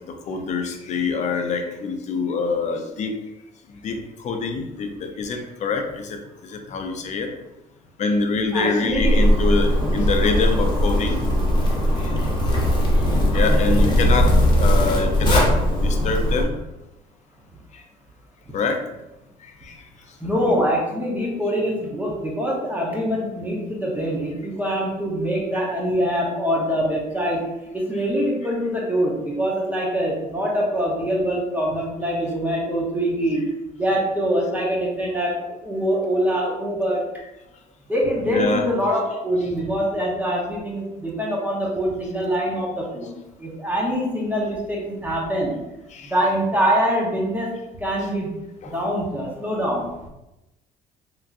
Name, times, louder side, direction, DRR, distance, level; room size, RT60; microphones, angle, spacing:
voice 1, 0.3-3.1 3.8-4.0 4.2-6.2 6.4-7.3 8.0-11.2 12.0-12.1 13.3-15.5 15.8-16.5 17.7-17.8 18.5-18.8 19.6-19.8 38.2-38.7 45.9-46.1 48.6-48.8, left 4 dB, 45° left, 4 dB, 0.5 m, -25 dB
voice 2, 8.5-9.2 20.2-27.4 27.7-33.5 33.8-35.4 35.6-37.0 37.9-43.1 43.4-45.5 46.0-47.5 47.8-48.3 48.6-50.1, equal, 10° right, -4 dB, 0.8 m, -24 dB
Zipper (clothing), 8.9-16.4, equal, 25° left, 0.9 m, -19 dB
3.4 x 2.9 x 2.5 m, 0.96 s
cardioid pair, 110°, 17 cm